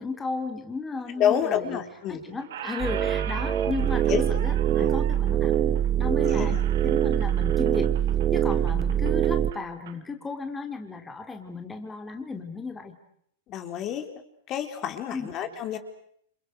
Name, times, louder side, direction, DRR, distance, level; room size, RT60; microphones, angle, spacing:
voice 1, 0.0-1.8 2.1-5.6 6.0-7.9 8.3-12.9 15.1-15.3, left 4 dB, 10° left, 5 dB, 3.2 m, -35 dB
voice 2, 1.2-2.2 3.4-3.5 4.1-4.2 4.8-5.0 6.2-6.6 13.5-14.1 14.5-15.8, left 9 dB, 35° left, 7 dB, 3.9 m, -28 dB
Squeak, 1.5-2.1 2.4-10.0, right 10 dB, 75° right, 2.7 m, -42 dB
sound 1, 2.8-9.5, right 10 dB, 25° right, 1.2 m, -24 dB
29.5 x 27.0 x 6.6 m, 0.67 s
hypercardioid pair, 135°, 0 cm